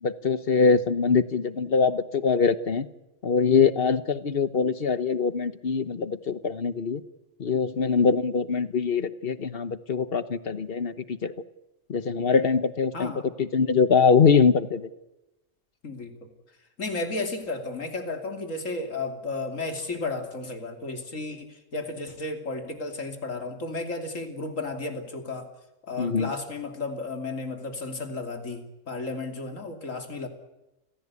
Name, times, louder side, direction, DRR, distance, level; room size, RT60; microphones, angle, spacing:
voice 1, 0.0-2.9 3.2-7.0 7.4-11.3 11.9-14.9 26.0-26.3, left 5 dB, 45° left, 14 dB, 1.2 m, -23 dB
voice 2, 12.9-13.3 15.8-16.3 16.8-25.5 25.8-30.3, left 3 dB, 70° left, 5 dB, 3.2 m, -33 dB
29.5 x 16.0 x 8.4 m, 0.97 s
omnidirectional pair, 1.4 m